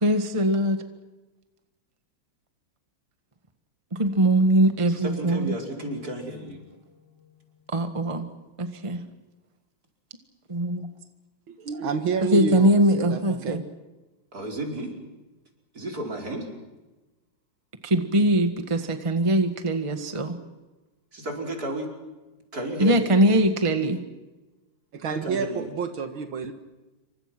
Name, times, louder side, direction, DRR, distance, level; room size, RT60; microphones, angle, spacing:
voice 1, 0.0-0.8 4.0-5.5 7.7-8.3 8.6-9.0 10.5-10.9 12.3-13.6 17.8-20.4 22.8-24.0, right 1 dB, 15° right, 7 dB, 1.6 m, -22 dB
voice 2, 4.9-6.7 14.3-15.0 15.7-16.5 21.1-21.9 22.5-23.2 25.1-25.7, right 1 dB, 50° right, 1 dB, 5.6 m, -33 dB
sound 1, 5.1-8.5, left 4 dB, 70° left, 3.9 m, -49 dB
voice 3, 11.5-12.7 13.1-13.6 24.9-26.5, right 6 dB, 85° right, 7 dB, 2.4 m, -29 dB
28.5 x 24.5 x 6.1 m, 1.1 s
omnidirectional pair, 2.1 m